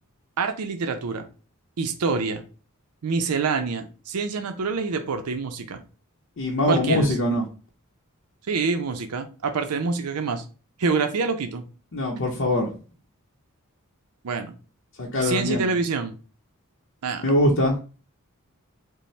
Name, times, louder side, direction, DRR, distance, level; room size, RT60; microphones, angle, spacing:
voice 1, 0.4-1.3 1.8-2.4 3.0-5.8 6.7-7.1 8.5-10.4 10.8-11.6 14.2-14.5 15.2-16.1 17.0-17.3, right 4 dB, 75° right, 7 dB, 0.5 m, -26 dB
voice 2, 6.4-7.4 11.9-12.7 15.0-15.7 17.2-17.8, left 1 dB, 55° left, -2 dB, 0.7 m, -22 dB
5.2 x 2.1 x 3.2 m, 0.36 s
head